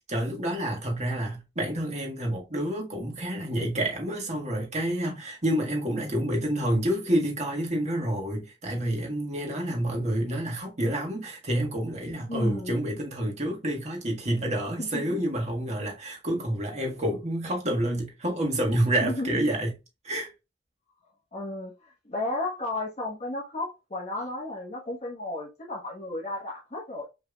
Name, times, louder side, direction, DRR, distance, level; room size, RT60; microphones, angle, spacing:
voice 1, 0.1-19.7 20.0-20.3, right 1 dB, 40° right, 1.6 m, -28 dB
voice 2, 12.3-12.8 14.8-15.2 17.0-17.1 19.0-19.4 21.3-21.7 22.0-27.1, left 2 dB, 40° left, 1.3 m, -33 dB
6.6 x 3.4 x 2.3 m
head